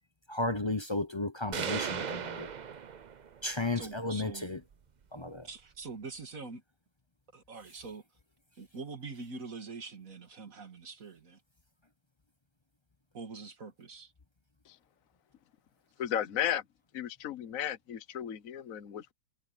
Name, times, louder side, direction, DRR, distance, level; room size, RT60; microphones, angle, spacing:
voice 1, 0.3-2.5 3.4-4.6 5.1-5.5, left 2 dB, 20° left, 0.8 m, -33 dB
sound 1, 1.5-3.5, right 7 dB, 85° right, 0.4 m, -37 dB
voice 2, 3.7-4.5 5.4-6.6 7.3-8.0 8.6-11.4 13.1-14.1, right 4 dB, 55° right, 2.5 m, -44 dB
voice 3, 16.0-16.6 16.9-19.1, left 10 dB, 55° left, 1.4 m, -34 dB
omnidirectional pair, 1.8 m